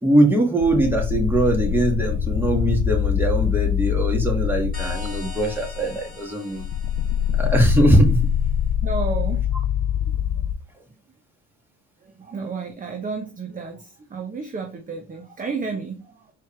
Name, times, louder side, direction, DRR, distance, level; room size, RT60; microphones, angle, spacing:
voice 1, 0.0-6.6 7.4-8.2, right 1 dB, 5° right, 0 dB, 1.8 m, -21 dB
sound 1, 0.6-6.1 6.5-10.5, left 9 dB, 50° left, 0.6 m, -24 dB
sound 2, 4.7-8.1, left 1 dB, 25° left, 2.6 m, -42 dB
voice 2, 8.8-9.4 12.0-16.3, right 4 dB, 25° right, 4 dB, 0.8 m, -32 dB
4.5 x 3.3 x 3.2 m, 0.29 s
supercardioid pair, 75°, 34 cm